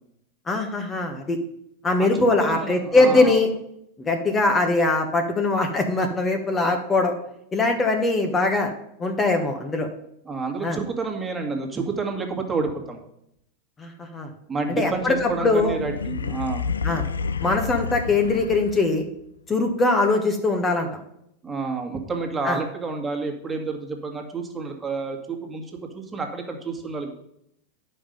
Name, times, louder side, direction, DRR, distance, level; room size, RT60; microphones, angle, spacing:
voice 1, 0.5-1.4 1.8-3.5 4.0-7.1 7.5-8.7 9.0-9.9 10.6-10.8 13.8-14.3 14.7-15.7 16.8-17.1 17.4-19.0 19.5-21.0 22.4-22.6, left 2 dB, 20° left, 4 dB, 1.3 m, -21 dB
voice 2, 2.0-3.4 10.3-13.0 14.5-16.7 21.4-27.1, right 4 dB, 20° right, 3 dB, 1.9 m, -29 dB
sound 1, 14.8-19.0, left 5 dB, 85° left, 0.5 m, -30 dB
9.9 x 5.6 x 5.3 m, 0.77 s
hypercardioid pair, 95°, 0 cm